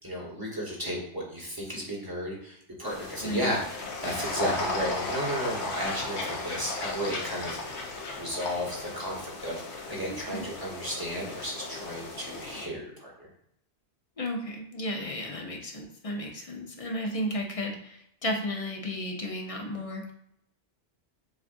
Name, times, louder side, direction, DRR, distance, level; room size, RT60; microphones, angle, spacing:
voice 1, 0.0-7.8 8.2-9.6 9.9-13.3, equal, 20° right, -5 dB, 1.3 m, -33 dB
sound 1, 2.8-12.7, left 3 dB, 75° left, 1.1 m, -36 dB
voice 2, 3.2-3.5 10.1-10.5 14.2-20.1, left 1 dB, 35° left, 1 dB, 0.7 m, -34 dB
7.4 x 2.5 x 2.6 m, 0.73 s
omnidirectional pair, 1.1 m